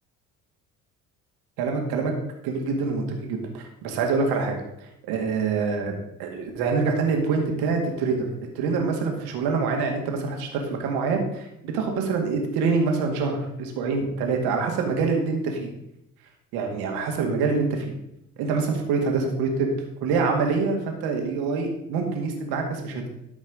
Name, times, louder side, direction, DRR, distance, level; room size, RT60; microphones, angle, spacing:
voice 1, 1.6-2.1 2.4-8.3 8.6-15.7 16.5-17.9 18.4-19.7 20.0-23.1, right 4 dB, 65° right, 2 dB, 2.2 m, -25 dB
13.0 x 5.3 x 5.1 m, 0.85 s
hypercardioid pair, 55°, 41 cm